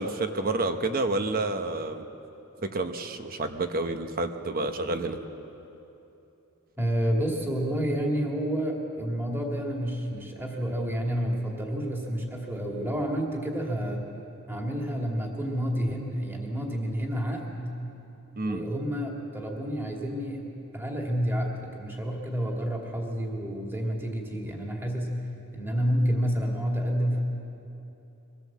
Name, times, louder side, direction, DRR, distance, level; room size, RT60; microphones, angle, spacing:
voice 1, 0.0-2.1 2.7-5.2 18.4-18.6, right 2 dB, 40° right, 7 dB, 1.0 m, -29 dB
voice 2, 6.8-14.0 14.5-17.7 18.4-20.4 20.7-25.2 25.5-27.2, equal, 10° right, -1 dB, 2.4 m, -29 dB
23.5 x 16.0 x 7.5 m, 2.9 s
head